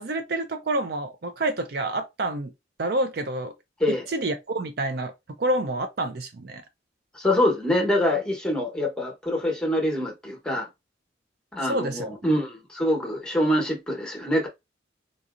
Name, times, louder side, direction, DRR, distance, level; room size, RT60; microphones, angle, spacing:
voice 1, 0.0-2.5 2.8-3.5 4.1-5.1 5.4-6.6 11.6-12.1, right 2 dB, 55° right, 0.5 m, -28 dB
voice 2, 7.1-10.7 11.5-14.5, left 1 dB, 5° left, 1.0 m, -25 dB
3.8 x 2.8 x 2.5 m
head